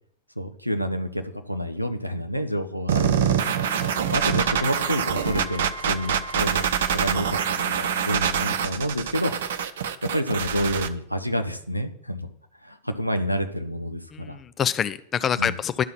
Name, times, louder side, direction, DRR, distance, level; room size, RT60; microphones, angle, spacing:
voice 1, 0.4-3.5 4.1-9.3 9.7-12.3 12.6-14.4 15.4-15.6, equal, 90° left, 7 dB, 0.9 m, -29 dB
sound 1, 2.9-10.9, right 8 dB, 60° right, 0.7 m, -25 dB
Wind instrument woodwind instrument, 3.5-7.6, left 1 dB, 75° left, 3.4 m, -40 dB
voice 2, 3.7-4.1 14.1-15.8, left 8 dB, 25° left, 14 dB, 0.4 m, -27 dB
11.5 x 5.6 x 5.9 m, 0.66 s
figure-of-eight pair, 90°, 0 cm